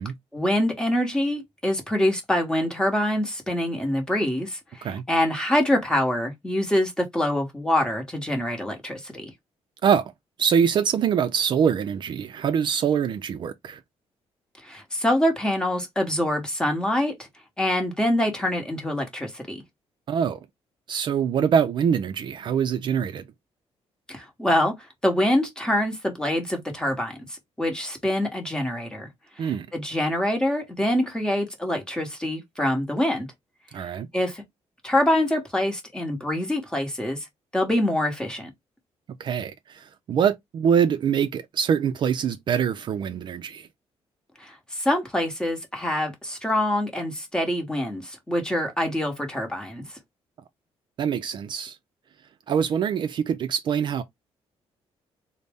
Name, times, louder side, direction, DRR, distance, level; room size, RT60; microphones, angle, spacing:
voice 1, 0.3-9.3 14.6-17.1 17.6-19.6 24.1-24.8 25.0-29.1 29.4-33.3 34.1-34.4 34.8-37.2 37.5-38.5 44.4-49.8, left 1 dB, 5° left, 1.0 m, -25 dB
voice 2, 9.8-10.1 10.4-13.8 20.1-20.5 20.9-23.3 29.4-29.7 33.7-34.1 39.2-43.7 51.0-51.8 52.5-54.0, right 7 dB, 45° right, 0.3 m, -24 dB
3.9 x 2.0 x 3.4 m
cardioid pair, 150°, 11 cm